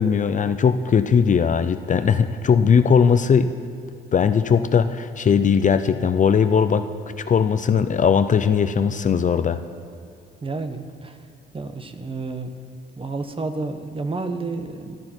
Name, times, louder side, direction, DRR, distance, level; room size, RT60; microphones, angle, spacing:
voice 1, 0.0-3.5 4.1-6.9 7.3-9.6, left 6 dB, 40° left, 10 dB, 0.6 m, -19 dB
voice 2, 10.4-11.2 11.5-12.5 13.0-15.0, right 3 dB, 25° right, 8 dB, 1.1 m, -30 dB
14.5 x 12.0 x 4.6 m, 2.5 s
cardioid pair, 90°, 20 cm